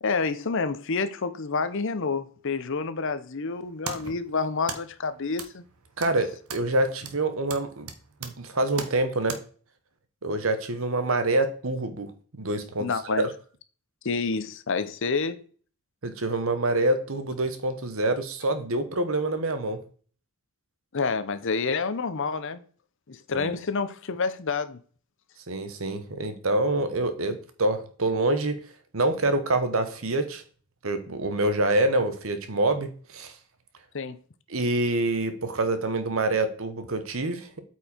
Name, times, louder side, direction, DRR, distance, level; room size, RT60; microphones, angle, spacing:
voice 1, 0.0-5.6 12.8-13.3 14.0-15.4 20.9-22.6 23.1-24.8 33.9-34.2, left 4 dB, 60° left, 0.7 m, -28 dB
sound 1, 3.5-9.4, right 5 dB, 85° right, 1.1 m, -41 dB
voice 2, 6.0-7.9 8.2-9.4 10.2-12.9 13.2-13.3 16.0-19.8 23.3-23.5 25.5-28.6 28.9-30.4 30.8-33.3 34.5-37.5, right 2 dB, 65° right, 1.1 m, -26 dB
8.5 x 4.6 x 4.4 m
head